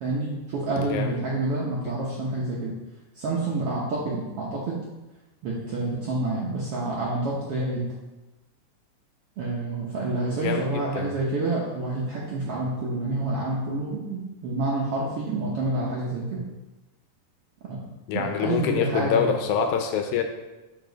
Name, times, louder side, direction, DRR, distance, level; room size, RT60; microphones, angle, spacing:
voice 1, 0.0-2.8 3.1-4.8 5.4-7.9 9.4-16.4 17.6-17.8 18.1-19.3, right 2 dB, 70° right, -5 dB, 1.4 m, -28 dB
voice 2, 0.8-1.1 10.4-10.6 11.0-11.1 18.1-20.2, left 7 dB, 80° left, 5 dB, 2.0 m, -25 dB
6.8 x 4.9 x 3.9 m, 1.1 s
omnidirectional pair, 3.7 m